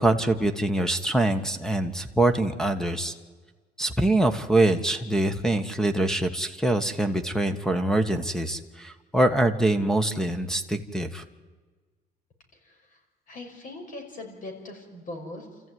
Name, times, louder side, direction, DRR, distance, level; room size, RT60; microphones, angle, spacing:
voice 1, 0.0-3.1 3.8-11.2, right 1 dB, 5° left, 10 dB, 1.4 m, -24 dB
voice 2, 12.5-13.0 13.3-15.6, left 2 dB, 50° left, 3 dB, 5.8 m, -41 dB
28.0 x 14.5 x 9.5 m, 1.4 s
cardioid pair, 110°, 17 cm